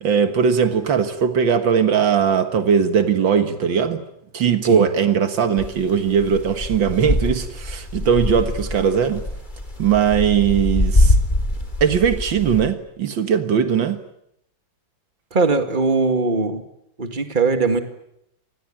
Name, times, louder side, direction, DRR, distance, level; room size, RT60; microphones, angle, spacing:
voice 1, 0.0-4.0 4.3-9.2 9.8-11.2 11.8-14.0, right 7 dB, 75° right, 2.2 m, -19 dB
sound 1, 5.6-12.7, left 1 dB, 25° left, 3.6 m, -23 dB
voice 2, 15.3-16.6 17.0-17.8, right 4 dB, 25° right, 2.2 m, -20 dB
27.0 x 20.5 x 9.0 m
omnidirectional pair, 2.1 m